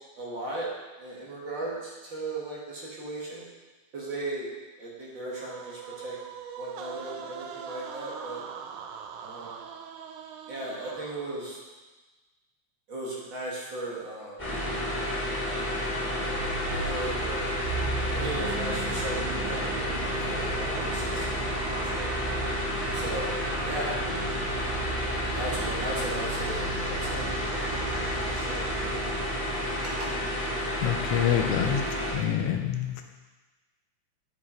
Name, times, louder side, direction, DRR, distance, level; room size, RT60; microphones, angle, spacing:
voice 1, 0.2-0.7 1.0-3.4 3.9-4.5 4.8-6.2 6.6-8.4 9.2-9.6 10.5-11.6 12.9-14.4 15.0-15.3 15.9-16.2 16.7-17.6 18.1-19.7 20.0-21.4 21.8-22.2 22.9-23.3 23.6-24.1 24.5-24.9 25.3-28.0 28.3-28.7 29.8-30.1, right 2 dB, 45° right, -5 dB, 1.8 m, -37 dB
sound 1, 5.3-11.6, right 7 dB, 90° right, 2.1 m, -42 dB
sound 2, 14.4-32.1, equal, 15° left, 2.1 m, -30 dB
sound 3, 16.1-29.4, right 3 dB, 75° right, 1.5 m, -37 dB
voice 2, 30.8-33.0, left 9 dB, 80° left, 4 dB, 1.3 m, -27 dB
9.5 x 4.8 x 4.3 m, 1.2 s
omnidirectional pair, 3.5 m